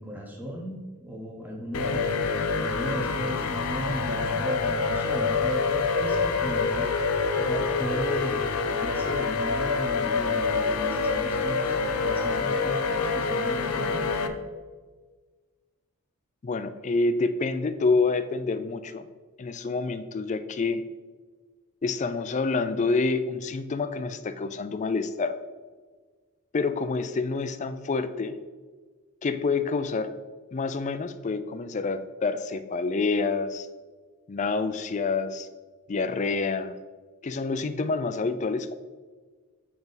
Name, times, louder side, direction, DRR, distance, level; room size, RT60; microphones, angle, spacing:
voice 1, 0.0-2.1 2.6-6.9 7.4-14.3, equal, 10° right, -2 dB, 1.0 m, -35 dB
sound 1, 1.7-14.3, left 4 dB, 85° left, 0.6 m, -26 dB
voice 2, 16.4-19.0 19.4-20.8 21.8-25.4 26.5-28.4 29.2-30.1 30.5-33.7 34.3-35.5 35.9-36.8 37.2-38.8, left 4 dB, 35° left, 12 dB, 0.3 m, -27 dB
6.9 x 5.2 x 4.1 m, 1.4 s
head